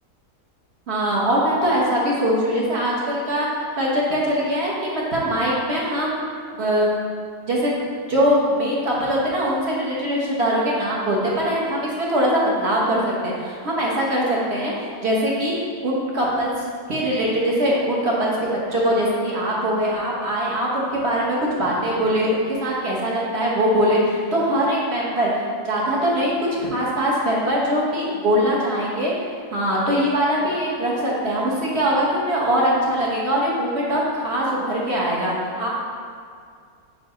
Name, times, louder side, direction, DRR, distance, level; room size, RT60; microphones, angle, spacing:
voice 1, 0.9-7.0 7.5-7.8 8.1-15.5 15.8-16.5 16.9-26.3 26.6-29.1 29.5-35.7, equal, 45° right, -5 dB, 1.2 m, -22 dB
4.9 x 4.7 x 4.3 m, 2.2 s
omnidirectional pair, 1.7 m